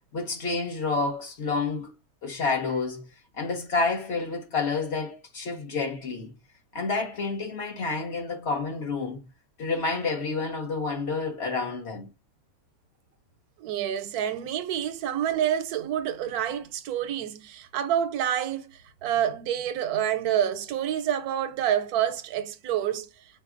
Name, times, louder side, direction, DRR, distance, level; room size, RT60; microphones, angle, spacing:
voice 1, 0.1-1.9 2.2-3.1 3.4-6.3 6.7-9.2 9.6-12.1, left 4 dB, 55° left, 0.9 m, -29 dB
voice 2, 13.6-23.1, right 10 dB, 85° right, 1.1 m, -28 dB
4.0 x 2.5 x 2.5 m
omnidirectional pair, 1.5 m